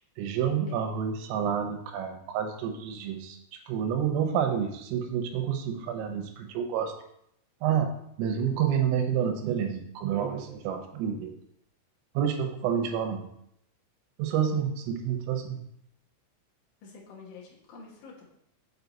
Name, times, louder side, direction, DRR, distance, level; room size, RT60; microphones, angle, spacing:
voice 1, 0.2-7.0 7.6-11.3 12.2-13.3 14.2-15.6, right 8 dB, 80° right, 5 dB, 3.4 m, -29 dB
voice 2, 0.7-1.1 16.8-18.3, left 4 dB, 65° left, -3 dB, 2.3 m, -48 dB
7.6 x 4.7 x 4.0 m, 0.74 s
omnidirectional pair, 6.0 m